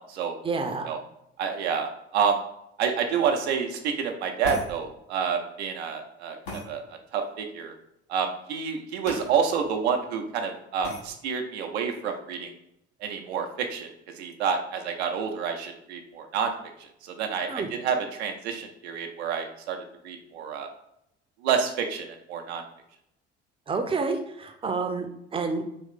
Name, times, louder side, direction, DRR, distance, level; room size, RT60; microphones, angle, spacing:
voice 1, 0.4-0.9 17.5-17.7 23.7-25.6, right 4 dB, 15° right, 5 dB, 0.6 m, -29 dB
voice 2, 1.4-2.4 2.8-6.8 7.1-7.7 8.1-12.5 13.0-13.9 14.2-16.5 17.0-19.8 20.0-20.7 21.4-22.6, right 6 dB, 70° right, 4 dB, 0.7 m, -28 dB
sound 1, 4.4-4.7 6.5-6.7 9.1-9.3 9.6-9.7 10.8-11.0, left 2 dB, 75° left, 1.2 m, -35 dB
4.2 x 3.1 x 3.6 m, 0.80 s
figure-of-eight pair, 55°, 34 cm